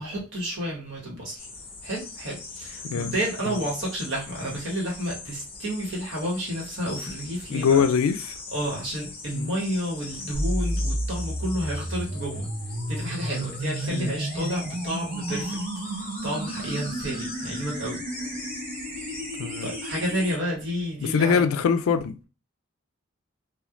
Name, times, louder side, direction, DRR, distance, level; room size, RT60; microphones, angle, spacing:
voice 1, 0.0-1.5 1.8-7.9 8.5-12.5 12.9-15.6 16.2-18.4 19.6-21.4, equal, 55° right, 1.3 m, -31 dB
sound 1, 1.4-20.4, left 3 dB, 25° left, 0.6 m, -41 dB
voice 2, 2.8-3.2 3.5-3.6 7.5-8.2 9.3-9.6 13.9-14.2 19.4-19.7 21.0-22.2, left 6 dB, 75° left, 0.3 m, -23 dB
sound 2, 10.3-20.4, right 1 dB, 40° right, 0.6 m, -32 dB
3.0 x 2.3 x 2.4 m
head